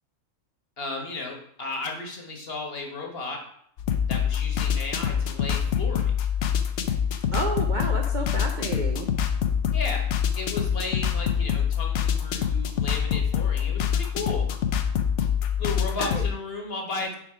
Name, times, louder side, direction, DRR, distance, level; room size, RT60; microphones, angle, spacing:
voice 1, 0.8-3.4 4.1-6.1 9.7-10.0 10.3-14.4 15.6-17.2, left 3 dB, 50° left, 1 dB, 1.3 m, -34 dB
sound 1, 3.8-16.3, left 8 dB, 70° left, 0.9 m, -25 dB
voice 2, 7.3-9.1 16.0-16.3, right 2 dB, 55° right, 2 dB, 0.6 m, -30 dB
5.0 x 4.8 x 4.8 m, 0.69 s
omnidirectional pair, 1.3 m